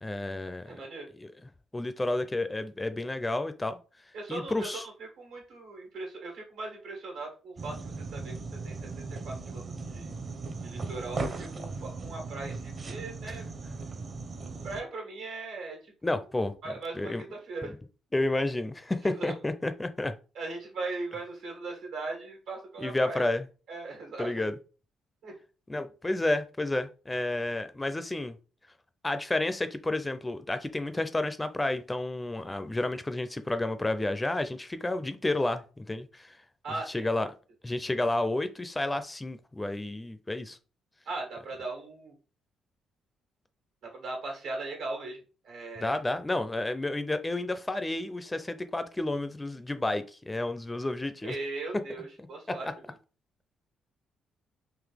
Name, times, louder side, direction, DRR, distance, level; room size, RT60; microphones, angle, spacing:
voice 1, 0.0-0.8 1.1-1.3 1.7-3.8 4.3-4.8 13.2-13.4 16.0-16.5 17.0-17.2 18.1-20.1 22.8-23.5 24.2-24.5 25.7-28.4 29.0-36.4 36.9-37.3 37.6-40.6 45.8-51.4 52.5-52.7, left 2 dB, 15° left, 0.4 m, -31 dB
voice 2, 0.7-1.1 4.1-10.1 10.6-13.4 14.6-16.2 16.6-17.7 19.2-19.3 20.3-23.3 23.7-24.5 25.2-25.3 36.6-37.1 41.0-42.1 43.8-45.2 45.4-46.0 51.2-52.9, right 3 dB, 85° right, 1.6 m, -39 dB
sound 1, 7.6-14.8, right 3 dB, 40° right, 0.7 m, -38 dB
3.9 x 2.7 x 3.4 m
cardioid pair, 90°, 0 cm